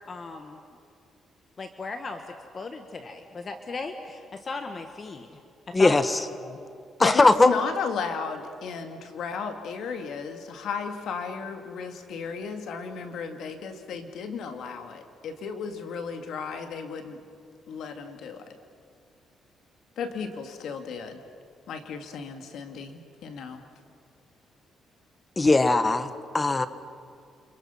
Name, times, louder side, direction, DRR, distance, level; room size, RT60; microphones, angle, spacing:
voice 1, 0.1-0.6 1.6-5.3 5.7-6.0 6.4-6.6, left 3 dB, 40° left, 6 dB, 1.5 m, -36 dB
voice 2, 5.7-6.2 7.0-7.5 25.4-26.1 26.3-26.7, left 2 dB, 20° left, 12 dB, 1.2 m, -19 dB
voice 3, 7.0-17.2 17.7-18.4 20.0-21.2 21.7-23.6, left 5 dB, 75° left, 6 dB, 2.3 m, -34 dB
29.0 x 27.5 x 5.8 m, 2.3 s
cardioid pair, 90°, 0 cm